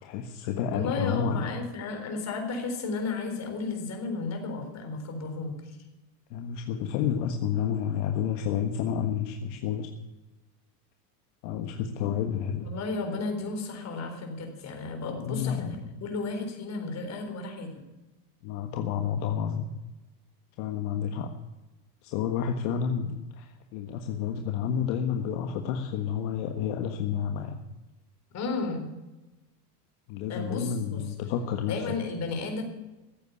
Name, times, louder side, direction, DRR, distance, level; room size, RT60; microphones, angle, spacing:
voice 1, 0.0-1.5 6.3-9.9 11.4-12.7 15.1-15.9 18.4-19.7 20.6-21.3 22.0-27.6 30.1-32.0, left 8 dB, 60° left, 4 dB, 1.5 m, -30 dB
voice 2, 0.7-5.5 12.6-17.7 28.3-28.9 30.3-31.0 31.6-32.6, left 3 dB, 35° left, 3 dB, 4.1 m, -33 dB
15.0 x 8.5 x 8.4 m, 1.0 s
supercardioid pair, 135°, 48 cm